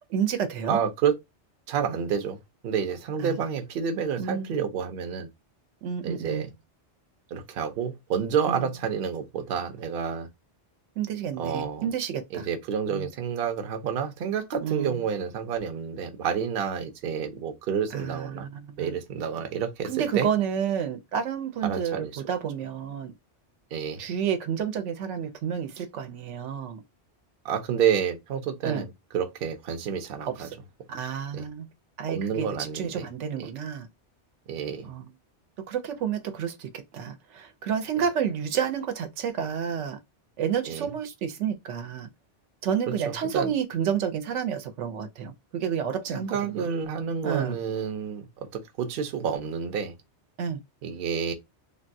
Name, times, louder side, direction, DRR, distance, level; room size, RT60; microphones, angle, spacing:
voice 1, 0.1-0.8 3.2-3.4 4.2-4.5 5.8-6.4 8.4-8.7 11.0-12.5 12.9-13.1 14.6-14.9 17.9-18.9 19.9-23.1 24.0-26.8 28.6-28.9 30.4-30.5 30.9-31.6 32.0-32.5 32.7-33.9 34.8-35.0 35.7-40.0 40.4-42.1 42.6-46.7 47.2-47.6 50.4-50.6, right 8 dB, 85° right, 0.9 m, -30 dB
voice 2, 0.7-1.1 1.7-2.4 2.6-5.3 6.0-6.5 7.3-10.3 11.4-11.8 12.3-18.5 18.8-20.3 21.6-22.2 23.7-24.0 27.4-30.5 31.3-31.5 32.1-33.1 33.4-33.5 34.5-34.9 40.7-40.9 42.9-43.0 43.3-43.5 46.1-48.3 48.5-49.9 50.8-51.3, right 7 dB, 60° right, 0.8 m, -29 dB
3.5 x 2.2 x 2.5 m
omnidirectional pair, 1.2 m